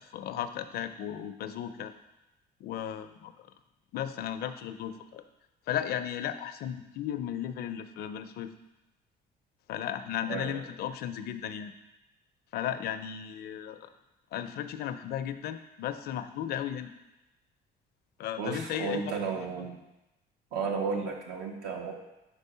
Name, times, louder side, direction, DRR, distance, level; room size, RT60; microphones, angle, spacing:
voice 1, 0.0-1.9 2.6-3.3 3.9-5.2 5.7-8.5 9.7-11.7 12.5-13.9 14.3-16.9 18.2-19.5, left 10 dB, 65° left, 10 dB, 0.5 m, -35 dB
voice 2, 10.3-10.6 18.4-19.7 20.5-21.9, right 5 dB, 80° right, 1 dB, 1.2 m, -33 dB
4.9 x 4.6 x 5.4 m, 0.97 s
cardioid pair, 110°, 17 cm